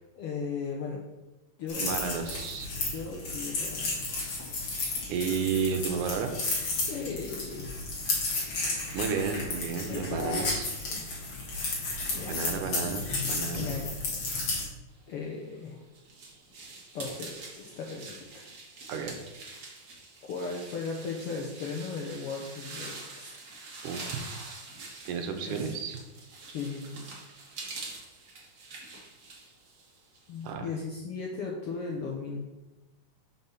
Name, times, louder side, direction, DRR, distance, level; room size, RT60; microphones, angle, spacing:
voice 1, 0.1-1.0 1.6-2.0 2.9-4.4 6.9-7.7 9.9-10.5 10.9-11.0 12.1-12.7 13.5-14.5 15.1-15.8 16.9-18.5 20.2-23.3 25.5-25.7 26.5-27.1 30.3-32.4, left 4 dB, 70° left, -1 dB, 1.4 m, -37 dB
sound 1, 1.7-14.6, left 3 dB, 50° left, 2.6 m, -33 dB
voice 2, 1.8-2.7 5.1-6.3 8.9-10.7 12.2-13.7 18.9-19.2 23.8-24.4 25.1-26.0 30.4-30.7, right 6 dB, 85° right, 5 dB, 2.3 m, -32 dB
sound 2, 15.3-30.5, right 3 dB, 45° right, 1.3 m, -45 dB
5.5 x 5.3 x 5.8 m, 1.1 s
omnidirectional pair, 3.6 m